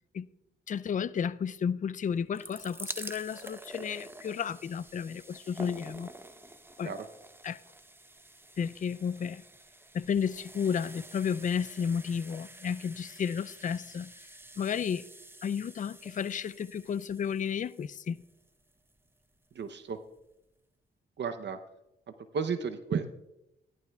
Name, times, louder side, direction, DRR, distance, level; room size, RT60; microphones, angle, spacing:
voice 1, 0.7-6.1 6.8-6.9 7.4-7.6 8.6-9.4 9.9-14.1 14.6-15.1 15.4-18.2, left 7 dB, 40° left, 0.4 m, -32 dB
sound 1, 2.1-19.1 19.9-20.0 20.2-20.3, right 1 dB, 10° right, 0.7 m, -48 dB
voice 2, 19.5-20.0 21.2-21.6 22.3-23.1, right 6 dB, 55° right, 0.7 m, -33 dB
14.5 x 11.5 x 2.3 m
cardioid pair, 65°, 21 cm